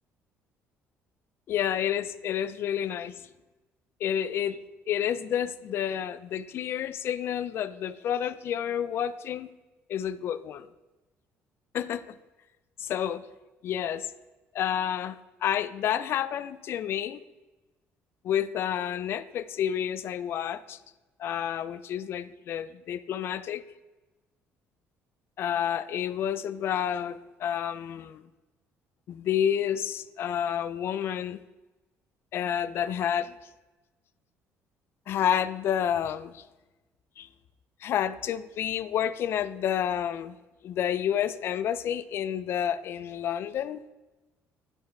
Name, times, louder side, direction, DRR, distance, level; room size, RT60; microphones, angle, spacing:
voice 1, 1.5-3.3 4.0-4.6 4.9-9.5 9.9-10.7 11.7-12.1 12.8-13.3 13.6-14.1 14.5-15.2 15.4-17.2 18.2-20.8 21.2-23.6 25.4-28.3 29.1-31.4 32.3-33.3 35.1-36.4 37.2-37.3 37.8-40.3 40.6-43.8, left 9 dB, 50° left, 15 dB, 0.3 m, -29 dB
10.5 x 5.5 x 3.4 m, 1.1 s
cardioid pair, 145°, 5 cm